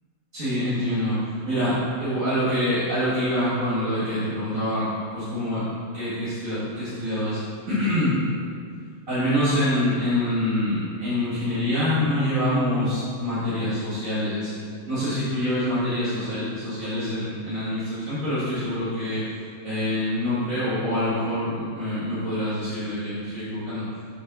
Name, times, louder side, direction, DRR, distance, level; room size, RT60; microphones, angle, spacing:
voice 1, 0.3-1.2 1.4-4.9 5.1-5.6 5.9-7.4 7.7-8.2 9.1-14.5 14.9-19.2 19.6-23.8, left 1 dB, 65° right, -12 dB, 2.6 m, -25 dB
7.9 x 3.5 x 6.3 m, 2.2 s
omnidirectional pair, 1.5 m